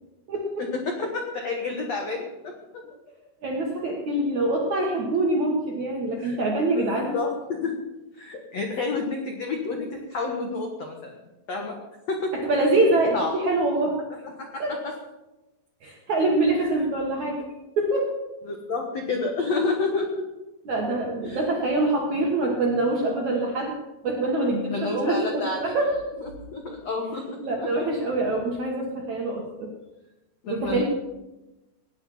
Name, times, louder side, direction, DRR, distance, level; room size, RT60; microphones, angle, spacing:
voice 1, 0.3-0.7 3.4-7.2 12.3-14.0 14.6-14.8 15.8-17.4 17.8-18.1 20.7-23.7 24.0-25.9 27.4-29.7 30.5-30.8, right 2 dB, 60° right, 0 dB, 1.9 m, -25 dB
voice 2, 0.8-2.5 6.2-6.4 6.7-7.8 8.2-11.1 11.5-11.8 12.1-12.3 13.1-13.3 14.4-14.9 18.5-20.2 21.2-21.4 24.7-25.8 26.2-27.7 30.4-30.8, left 3 dB, 80° left, 2 dB, 1.4 m, -29 dB
18.5 x 9.8 x 5.5 m, 1.0 s
omnidirectional pair, 5.5 m